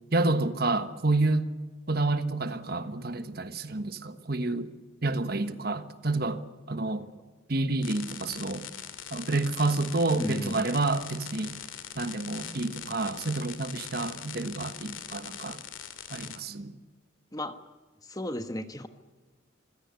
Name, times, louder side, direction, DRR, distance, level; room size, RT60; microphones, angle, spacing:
voice 1, 0.1-1.5 1.9-4.7 5.0-6.4 6.7-7.1 7.5-8.6 9.1-11.5 11.9-15.6 16.1-16.7, right 2 dB, 50° right, 1.3 m, -29 dB
sound 1, 7.8-16.4, left 9 dB, 90° left, 2.4 m, -42 dB
voice 2, 10.2-10.7 17.3-17.6 18.0-18.9, left 1 dB, 20° left, 1.3 m, -34 dB
26.0 x 16.5 x 8.4 m
head